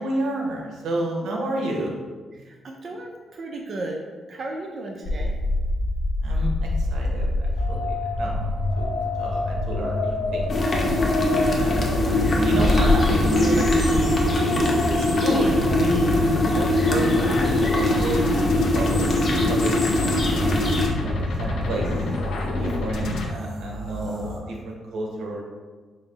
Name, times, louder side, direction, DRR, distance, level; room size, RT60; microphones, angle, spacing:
voice 1, 0.0-2.0 6.2-8.4 8.8-10.5 11.3-14.2 14.4-19.1 19.5-20.6 21.0-22.0 22.6-25.4, right 1 dB, 90° right, -1 dB, 0.8 m, -31 dB
voice 2, 2.4-4.0 4.3-5.4 11.6-11.8, right 2 dB, 45° right, 0 dB, 0.5 m, -35 dB
sound 1, 5.0-23.3, left 2 dB, 80° left, 0.6 m, -26 dB
sound 2, 10.5-20.9, left 1 dB, 35° left, 0.7 m, -22 dB
sound 3, 17.6-24.4, right 1 dB, 60° right, 0.9 m, -38 dB
5.4 x 2.0 x 3.9 m, 1.4 s
cardioid pair, 135°, 0 cm